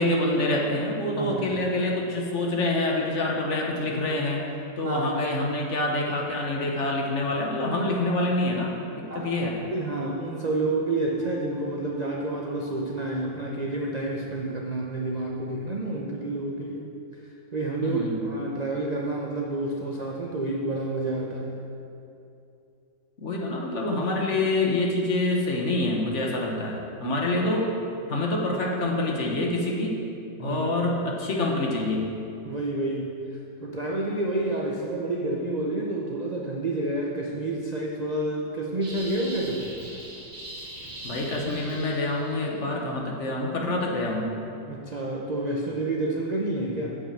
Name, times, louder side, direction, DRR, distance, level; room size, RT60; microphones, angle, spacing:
voice 1, 0.0-4.4 4.8-9.6 17.8-18.2 23.2-27.7 28.1-30.0 30.4-32.1 41.0-44.3, left 2 dB, 45° left, -1 dB, 1.2 m, -26 dB
voice 2, 1.2-1.5 4.8-5.1 9.1-9.3 9.7-16.9 17.5-21.5 27.0-27.2 30.4-30.7 32.4-33.1 33.6-39.7 44.7-47.0, right 2 dB, 75° right, -1 dB, 0.3 m, -29 dB
sound 1, 9.6-15.3 15.7-16.0 16.5-16.7, equal, 70° left, 2.0 m, -46 dB
sound 2, 38.8-42.5, right 1 dB, 30° right, 2.1 m, -40 dB
8.2 x 5.7 x 7.4 m, 2.7 s
omnidirectional pair, 1.9 m